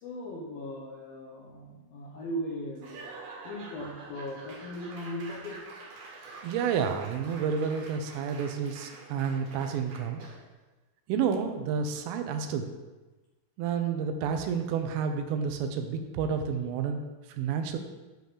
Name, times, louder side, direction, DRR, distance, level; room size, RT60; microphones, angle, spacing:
voice 1, 0.0-3.0 3.4-5.7, equal, 75° left, -4 dB, 2.2 m, -38 dB
Laughter / Applause / Crowd, 2.8-10.5, right 3 dB, 60° right, 2.8 m, -47 dB
voice 2, 6.4-10.2 11.1-12.7 13.6-17.0 17.3-17.8, right 6 dB, 80° right, 6 dB, 3.2 m, -30 dB
10.5 x 3.9 x 6.7 m, 1.2 s
omnidirectional pair, 5.8 m